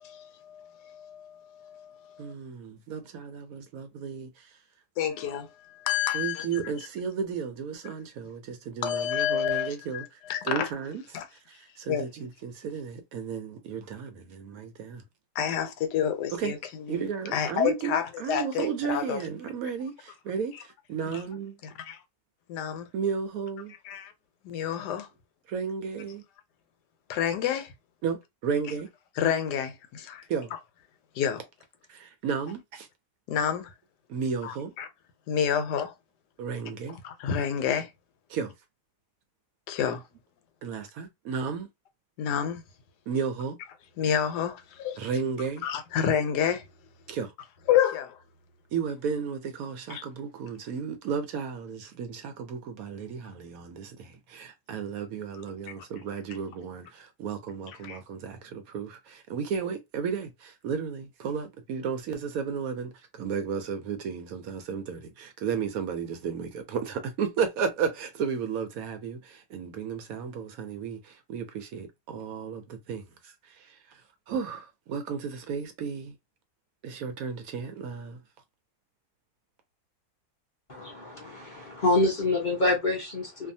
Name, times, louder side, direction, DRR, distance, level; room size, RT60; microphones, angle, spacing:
voice 1, 0.0-2.3 5.0-6.9 8.8-10.7 11.1-11.3 11.9-12.0 15.3-17.1 17.3-19.3 20.5-20.6 21.1-21.2 21.6-22.0 22.5-22.9 23.8-24.1 24.4-25.1 27.1-27.7 29.2-30.3 31.1-31.4 33.3-33.7 34.4-34.9 35.3-35.9 36.9-37.9 39.7-40.1 42.2-42.6 44.0-45.0 45.6-46.7 47.7-48.2 49.9-50.0 55.8-55.9 57.7-58.0, left 9 dB, 85° left, 1.2 m, -29 dB
voice 2, 2.2-4.5 6.1-10.0 10.4-11.0 11.8-15.0 16.3-16.5 16.9-21.5 22.9-23.7 25.5-26.2 28.0-28.9 30.3-30.5 31.9-32.9 34.1-34.7 36.4-37.0 38.3-38.5 40.6-41.7 43.1-43.6 45.0-45.6 47.1-47.3 48.7-73.8 74.3-76.1 76.8-78.2, right 6 dB, 70° right, 0.9 m, -33 dB
voice 3, 80.7-83.5, left 2 dB, 45° left, 0.6 m, -26 dB
2.6 x 2.3 x 2.6 m
omnidirectional pair, 1.7 m